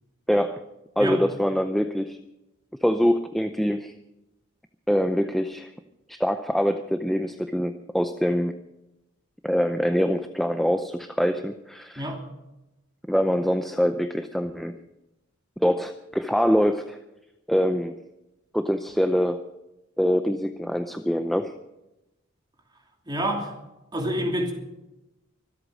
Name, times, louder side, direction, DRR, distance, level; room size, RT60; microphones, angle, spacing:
voice 1, 0.3-0.6 1.0-2.2 2.8-3.9 4.9-5.7 6.1-8.6 9.4-12.1 13.1-14.8 15.6-17.0 17.5-17.9 18.5-19.4 20.0-21.5, equal, ahead, 7 dB, 0.5 m, -24 dB
voice 2, 23.1-23.5 23.9-24.5, right 1 dB, 20° right, 1 dB, 2.9 m, -27 dB
24.5 x 8.3 x 6.3 m, 0.95 s
head